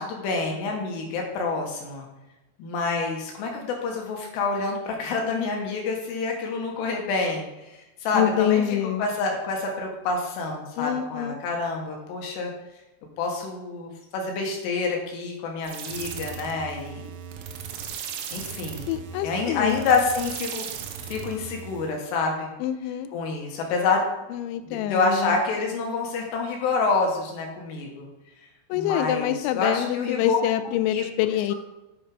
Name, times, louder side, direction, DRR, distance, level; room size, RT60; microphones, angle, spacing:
voice 1, 0.0-2.1 2.6-12.5 13.2-17.1 18.3-18.9 19.2-20.7 21.1-22.5 23.1-24.0 24.6-28.1 28.7-30.4 30.9-31.6, left 4 dB, 70° left, 1 dB, 2.9 m, -27 dB
voice 2, 8.1-9.1 10.8-11.4 18.9-19.8 22.6-23.1 24.3-25.4 28.7-31.6, left 11 dB, 90° left, 10 dB, 2.6 m, -26 dB
sound 1, 15.6-22.0, right 8 dB, 80° right, 3.4 m, -37 dB
8.6 x 5.2 x 5.3 m, 0.99 s
omnidirectional pair, 5.9 m